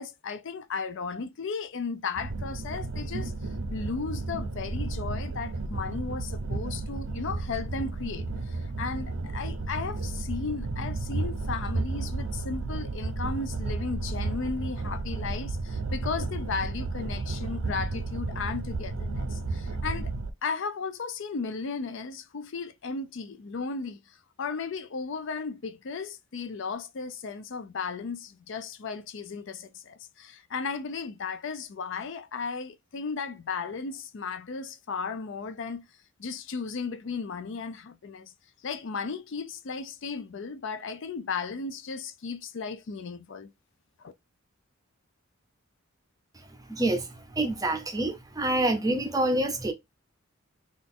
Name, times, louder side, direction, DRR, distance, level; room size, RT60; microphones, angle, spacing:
voice 1, 0.0-3.3 3.7-20.1 20.4-35.9 36.2-38.3 38.6-43.5 44.0-44.1, left 5 dB, 60° left, 0.4 m, -35 dB
sound 1, 2.2-20.3, right 3 dB, 75° right, 0.5 m, -33 dB
voice 2, 46.7-47.1 47.3-49.7, right 1 dB, 15° right, 0.6 m, -26 dB
3.9 x 2.5 x 3.5 m
head